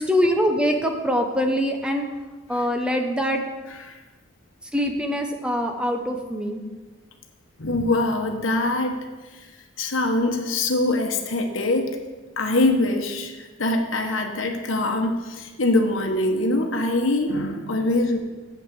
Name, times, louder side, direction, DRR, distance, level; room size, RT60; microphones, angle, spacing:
voice 1, 0.0-2.1 2.5-3.4 4.7-6.6, equal, 5° right, 3 dB, 0.8 m, -23 dB
voice 2, 7.6-9.0 9.3-9.5 9.8-12.0 12.4-18.2, left 2 dB, 75° left, 4 dB, 1.1 m, -23 dB
8.0 x 6.1 x 7.0 m, 1.2 s
head